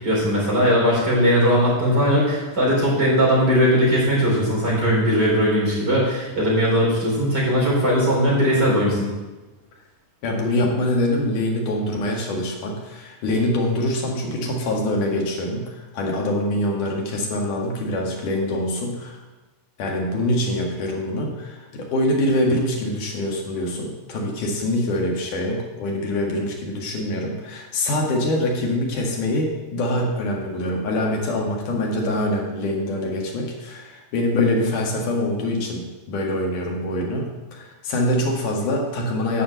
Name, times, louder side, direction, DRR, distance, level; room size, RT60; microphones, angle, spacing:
voice 1, 0.0-9.1, equal, 25° right, -5 dB, 3.5 m, -19 dB
voice 2, 10.2-19.2 19.8-35.8 36.1-39.4, left 1 dB, 60° left, 0 dB, 2.7 m, -24 dB
9.9 x 5.0 x 7.9 m, 1.1 s
omnidirectional pair, 4.7 m